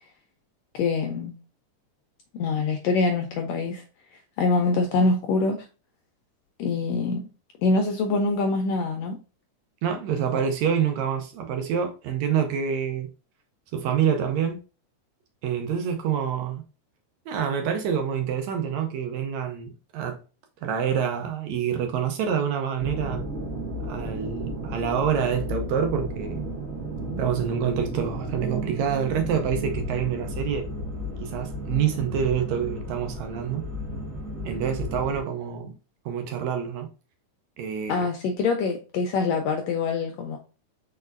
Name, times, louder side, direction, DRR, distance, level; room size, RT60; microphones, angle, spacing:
voice 1, 0.7-1.3 2.3-3.8 4.4-5.7 6.6-7.3 7.6-9.2 37.9-40.4, left 3 dB, 85° left, 1.5 m, -24 dB
voice 2, 9.8-13.1 13.7-14.6 15.4-16.6 17.3-20.2 20.6-23.3 23.9-26.4 27.2-30.7 31.2-33.6 34.5-35.8 36.1-36.9 37.6-38.0, right 8 dB, 75° right, 1.8 m, -27 dB
sound 1, 22.8-35.2, equal, 40° right, 1.2 m, -33 dB
4.9 x 4.5 x 2.5 m
omnidirectional pair, 3.6 m